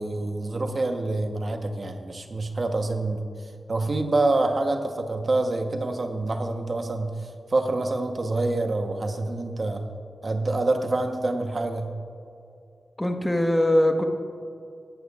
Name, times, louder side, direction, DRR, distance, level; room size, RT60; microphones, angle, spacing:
voice 1, 0.0-3.2 3.7-7.1 7.5-9.9 10.2-11.9, right 2 dB, 50° right, 5 dB, 0.9 m, -26 dB
voice 2, 13.0-14.0, left 1 dB, 15° left, 4 dB, 1.3 m, -21 dB
17.0 x 11.5 x 2.4 m, 2.6 s
cardioid pair, 55°, 0 cm